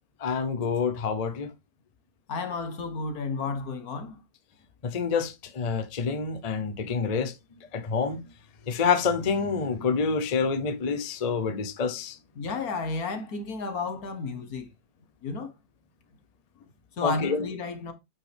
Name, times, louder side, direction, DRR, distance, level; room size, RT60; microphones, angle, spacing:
voice 1, 0.2-1.5 4.8-7.3 7.7-8.2 8.7-12.2 17.0-17.4, left 5 dB, 35° left, 0.7 m, -27 dB
voice 2, 2.3-4.2 12.4-14.7 15.2-15.5 17.0-17.9, left 4 dB, 75° left, 1.8 m, -32 dB
8.6 x 5.5 x 3.5 m
omnidirectional pair, 1.6 m